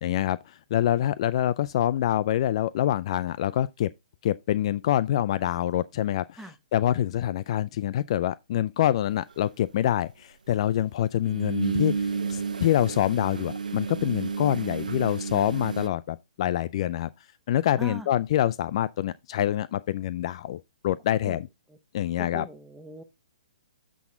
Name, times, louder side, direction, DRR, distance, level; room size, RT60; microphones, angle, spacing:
voice 1, 0.0-3.9 4.2-6.4 6.7-17.1 17.5-21.5 21.9-22.5, left 12 dB, 45° left, 0.3 m, -26 dB
sound 1, 9.3-9.4 11.3-15.9, right 5 dB, 85° right, 0.7 m, -31 dB
voice 2, 22.2-23.0, right 3 dB, 5° right, 1.0 m, -40 dB
7.1 x 6.2 x 3.7 m
hypercardioid pair, 140°, 4 cm